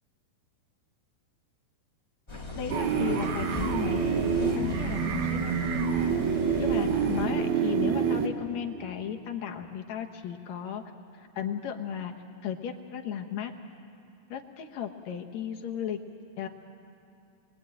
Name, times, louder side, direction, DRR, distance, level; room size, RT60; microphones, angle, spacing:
sound 1, 2.3-7.3, equal, 10° left, 1.2 m, -37 dB
voice 1, 2.6-4.0 4.4-5.5 6.6-10.8 11.4-12.1 12.4-13.5 14.3-16.0 16.4-16.5, left 9 dB, 60° left, 4 dB, 2.1 m, -35 dB
sound 2, 2.7-8.3, right 6 dB, 80° right, 3.3 m, -27 dB
29.0 x 22.5 x 8.9 m, 2.6 s
omnidirectional pair, 4.2 m